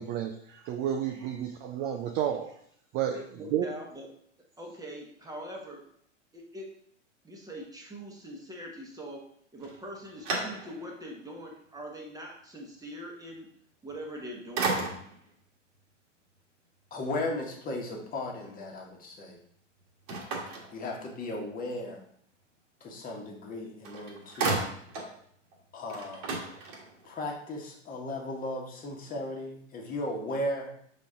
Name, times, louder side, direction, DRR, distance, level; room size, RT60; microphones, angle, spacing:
voice 1, 0.0-2.5 2.9-3.2 3.5-3.7, right 10 dB, 25° right, 5 dB, 0.4 m, -31 dB
voice 2, 3.1-4.1 4.6-5.8 6.3-6.7 7.2-9.2 9.5-13.5 13.8-14.9, equal, 10° right, 0 dB, 1.3 m, -42 dB
sound 1, 9.6-11.0 11.6-11.7 13.9-14.2 14.6-15.3 20.1-21.4 23.5-23.6 23.8-25.2 25.5-25.6 25.9-27.1, right 3 dB, 45° right, 1.6 m, -34 dB
voice 3, 16.9-19.4 20.7-22.0 22.8-24.7 25.7-26.3 27.0-30.7, left 1 dB, 20° left, 0 dB, 1.4 m, -36 dB
6.4 x 4.2 x 3.7 m, 0.65 s
figure-of-eight pair, 95°, 38 cm